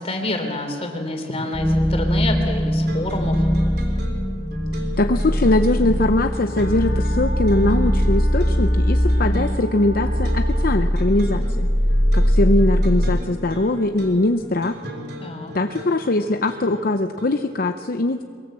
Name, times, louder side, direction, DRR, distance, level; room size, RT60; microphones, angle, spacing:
voice 1, 0.0-3.4 15.2-15.5, left 2 dB, 35° left, 4 dB, 3.5 m, -27 dB
sound 1, 1.5-13.2, equal, 5° left, 0.5 m, -21 dB
sound 2, 2.9-17.6, equal, 60° right, 3.6 m, -38 dB
voice 2, 5.0-11.7 12.1-14.8 15.5-18.2, left 2 dB, 55° left, 7 dB, 0.8 m, -21 dB
Wind instrument woodwind instrument, 6.4-10.8, right 1 dB, 75° left, 2.4 m, -36 dB
23.0 x 22.5 x 7.6 m, 2.2 s
head